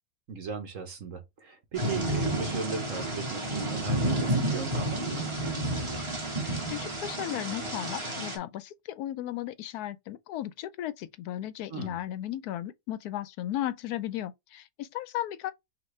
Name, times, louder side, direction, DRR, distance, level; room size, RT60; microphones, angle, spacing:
voice 1, 0.3-5.2 11.7-12.0, right 5 dB, 55° right, 1.3 m, -37 dB
Thunder / Rain, 1.7-8.4, right 1 dB, 20° right, 1.3 m, -30 dB
voice 2, 6.7-15.5, left 13 dB, 70° left, 1.0 m, -35 dB
5.8 x 2.5 x 3.2 m
omnidirectional pair, 1.8 m